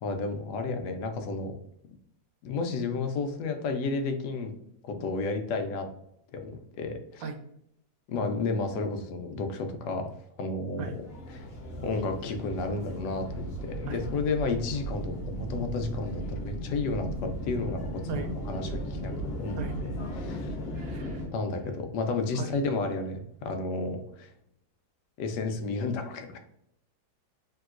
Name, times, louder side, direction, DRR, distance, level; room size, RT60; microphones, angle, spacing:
voice 1, 0.0-1.6 2.4-4.5 5.0-5.9 6.3-7.2 8.1-10.1 10.4-10.9 11.3-11.4 11.8-19.6 20.1-20.5 21.3-24.3 25.2-26.4, left 3 dB, 80° left, 6 dB, 1.2 m, -32 dB
sound 1, 10.7-21.3, equal, 45° left, 0.9 m, -36 dB
voice 2, 20.7-21.2 22.4-22.5, right 5 dB, 85° right, 4 dB, 1.2 m, -37 dB
3.4 x 2.9 x 2.4 m, 0.75 s
omnidirectional pair, 1.8 m